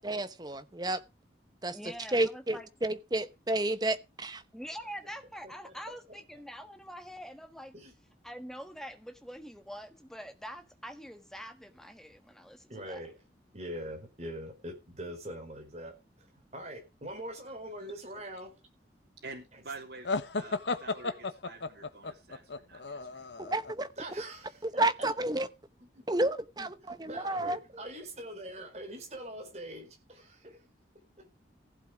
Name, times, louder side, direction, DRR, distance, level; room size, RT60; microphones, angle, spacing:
voice 1, 0.0-1.0 1.6-1.8 2.1-4.4 23.4-23.9 24.6-25.5 26.1-27.6, right 2 dB, 25° right, 0.9 m, -31 dB
voice 2, 1.7-2.7 4.5-7.7 8.2-13.0, equal, 5° left, 1.5 m, -45 dB
voice 3, 5.4-6.4 7.7-7.9 12.7-13.2 13.5-16.3 16.5-18.5 24.0-24.6 25.9-26.0 26.8-30.6 31.2-31.3, right 1 dB, 40° right, 4.2 m, -43 dB
voice 4, 19.2-20.1 20.4-23.4, right 3 dB, 80° right, 3.7 m, -47 dB
sound 1, 20.1-23.7, left 3 dB, 90° left, 1.1 m, -34 dB
15.5 x 8.1 x 5.0 m
head